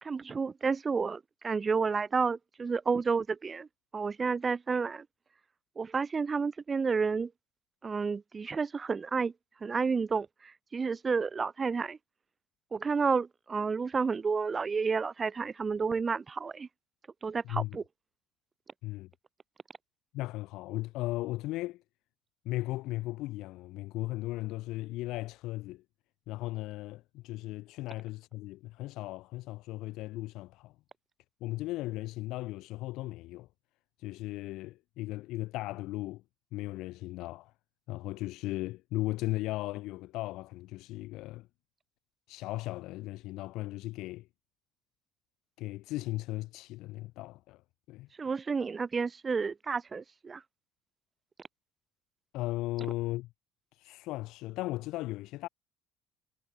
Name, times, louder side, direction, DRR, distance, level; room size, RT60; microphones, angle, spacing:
voice 1, 0.0-3.7 3.9-5.1 5.8-7.3 7.8-9.3 9.6-12.0 12.7-16.7 17.2-17.8 48.2-50.4, right 5 dB, 20° right, 1.8 m, -31 dB
voice 2, 20.1-21.8 22.5-25.8 26.3-30.7 31.4-33.5 34.0-36.2 36.5-37.5 37.9-41.5 42.3-44.3 45.6-47.6 47.9-48.1 52.3-53.3 53.7-55.5, left 18 dB, 65° left, 6.9 m, -37 dB
cardioid pair, 155°, 0 cm